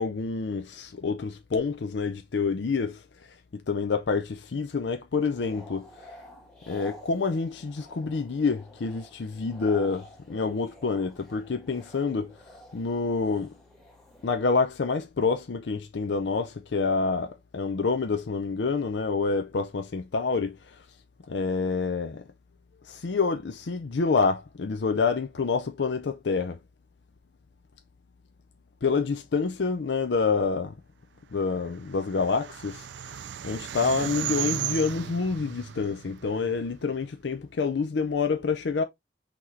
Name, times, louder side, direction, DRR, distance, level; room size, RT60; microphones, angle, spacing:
voice 1, 0.0-3.0 3.5-5.9 6.7-12.4 12.7-13.5 14.2-20.8 21.3-22.2 22.8-26.6 28.8-30.8 31.3-38.8, left 4 dB, 70° left, 0.5 m, -27 dB
sound 1, 5.2-14.7, equal, 5° left, 1.6 m, -49 dB
sound 2, 31.6-37.0, right 11 dB, 70° right, 0.3 m, -35 dB
5.8 x 3.0 x 3.1 m
head